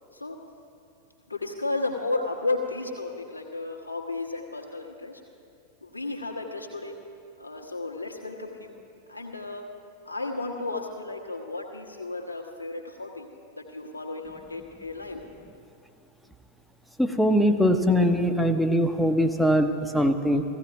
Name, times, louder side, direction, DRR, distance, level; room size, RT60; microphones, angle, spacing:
voice 1, 1.3-5.2 5.8-6.9 7.4-8.8 9.1-9.6 10.0-15.2, left 3 dB, 85° left, 1 dB, 1.3 m, -33 dB
voice 2, 17.0-20.4, equal, ahead, 6 dB, 0.8 m, -22 dB
16.0 x 15.5 x 3.4 m, 2.6 s
figure-of-eight pair, 90°, 0 cm